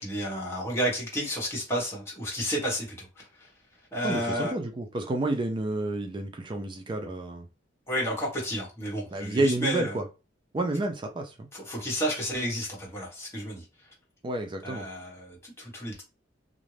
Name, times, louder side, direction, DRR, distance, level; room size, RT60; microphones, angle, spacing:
voice 1, 0.0-3.5 3.9-4.5 7.9-9.9 11.5-13.6 14.6-16.0, equal, 15° left, 1.1 m, -31 dB
voice 2, 4.0-7.5 9.1-10.0 10.5-11.5 14.2-14.8, right 2 dB, 25° right, 0.4 m, -30 dB
2.5 x 2.0 x 3.1 m
head